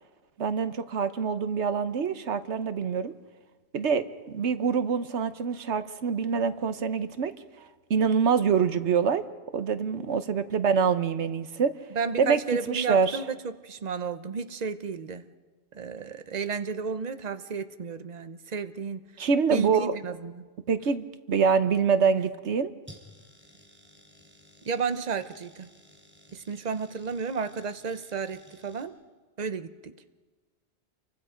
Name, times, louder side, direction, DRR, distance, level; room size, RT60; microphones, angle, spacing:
voice 1, 0.4-3.1 3.7-7.3 7.6-9.2 9.5-11.7 12.2-12.4 12.7-13.2 19.2-20.0 20.7-22.7, right 6 dB, 90° right, 12 dB, 1.3 m, -25 dB
voice 2, 11.9-15.3 15.7-19.1 19.5-20.5 24.6-25.7 26.3-28.9 29.4-29.9, right 5 dB, 40° right, 11 dB, 0.9 m, -32 dB
sound 1, 22.8-28.8, equal, 10° right, 3.4 m, -55 dB
29.0 x 24.0 x 5.1 m, 1.4 s
omnidirectional pair, 1.1 m